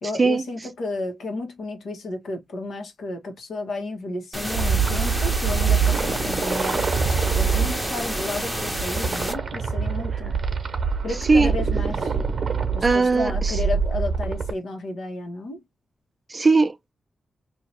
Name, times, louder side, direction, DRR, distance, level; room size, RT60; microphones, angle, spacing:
voice 1, 0.0-10.4 11.0-12.1 12.7-15.6, left 2 dB, 90° left, 1.4 m, -32 dB
sound 1, 4.3-9.3, equal, ahead, 0.8 m, -29 dB
sound 2, 4.5-14.5, right 5 dB, 45° right, 0.9 m, -25 dB
voice 2, 12.8-13.6 16.3-16.9, right 3 dB, 25° right, 0.5 m, -19 dB
2.8 x 2.8 x 4.4 m
wide cardioid pair, 150°, 0 cm